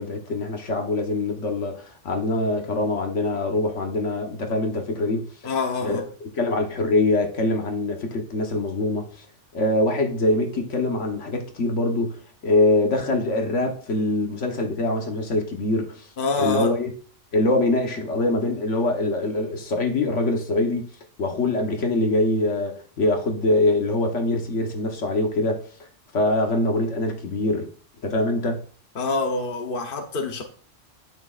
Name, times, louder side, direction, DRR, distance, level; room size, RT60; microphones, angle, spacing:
voice 1, 0.0-5.3 5.8-6.0 6.3-9.2 9.5-16.1 16.4-16.9 17.3-20.9 21.2-25.7 26.1-27.7 28.0-28.6, left 2 dB, 75° left, 1.5 m, -24 dB
voice 2, 5.4-6.0 16.2-16.7 28.9-30.4, left 3 dB, 50° left, 1.1 m, -26 dB
11.0 x 6.4 x 2.5 m
omnidirectional pair, 1.3 m